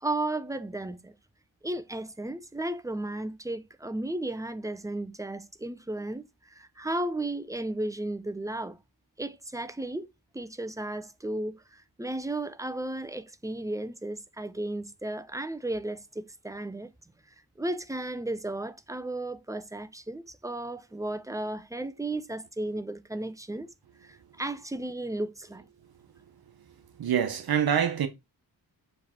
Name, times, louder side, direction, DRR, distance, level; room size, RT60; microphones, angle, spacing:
voice 1, 0.0-1.1 1.6-8.8 9.2-10.1 10.3-16.9 17.6-23.7 24.0-25.7, right 1 dB, 10° right, 0.4 m, -34 dB
voice 2, 26.9-28.1, right 8 dB, 60° right, 0.9 m, -26 dB
7.0 x 3.3 x 4.3 m
wide cardioid pair, 135°, 40 cm